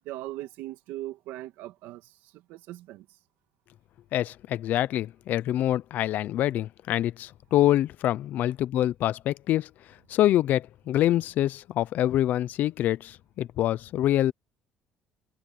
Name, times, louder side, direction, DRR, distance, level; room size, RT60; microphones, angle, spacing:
voice 1, 0.1-3.1, right 16 dB, 90° right, 2.1 m, -39 dB
voice 2, 4.1-9.7 10.1-14.3, left 13 dB, 60° left, 0.7 m, -25 dB
cardioid pair, 140°, 3 cm